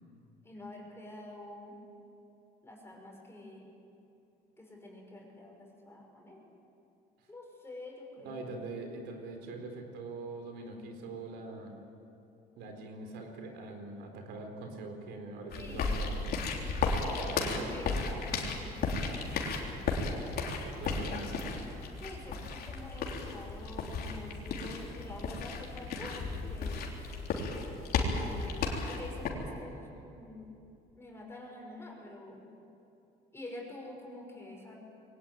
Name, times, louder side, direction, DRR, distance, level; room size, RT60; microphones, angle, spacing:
voice 1, 0.4-1.8 2.6-3.7 4.6-6.4 7.3-8.4 15.5-16.1 17.0-19.3 20.9-21.1 22.0-26.9 27.9-30.5 30.9-32.5 33.3-34.7, left 2 dB, 15° left, -1 dB, 5.7 m, -47 dB
voice 2, 8.2-11.7 12.6-16.2 17.2-17.7 20.8-21.3, right 3 dB, 85° right, 4 dB, 4.0 m, -43 dB
sound 1, 15.5-29.3, left 4 dB, 65° left, 3.5 m, -34 dB
22.0 x 18.0 x 9.3 m, 2.8 s
cardioid pair, 110°, 17 cm